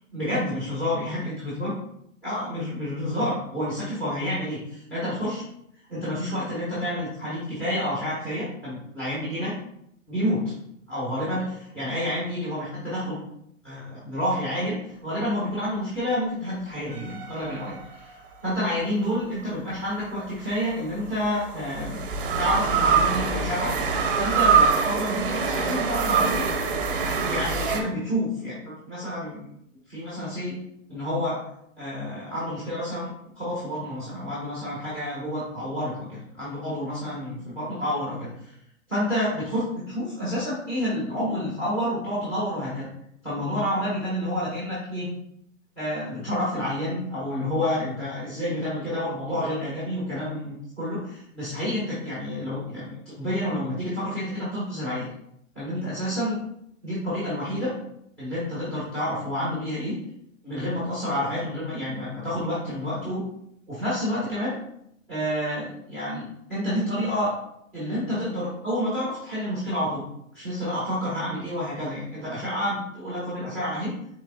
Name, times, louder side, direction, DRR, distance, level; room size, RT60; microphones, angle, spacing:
voice 1, 0.1-1.7 2.2-5.4 5.9-9.5 10.1-10.4 10.9-13.2 13.6-18.1 18.4-22.0 22.4-23.7 24.1-26.5 27.1-29.5 29.9-30.6 30.9-31.4 31.8-33.1 33.4-38.5 38.9-42.9 43.2-45.1 45.8-55.1 55.5-56.4 56.8-57.7 58.2-59.9 60.4-63.2 63.7-64.5 65.1-67.3 67.7-70.0 70.3-73.9, equal, 5° left, -9 dB, 0.6 m, -29 dB
sound 1, 16.9-18.4 20.3-27.8, right 5 dB, 45° right, 0.6 m, -24 dB
4.0 x 3.1 x 3.7 m, 0.74 s
hypercardioid pair, 175°, 40 cm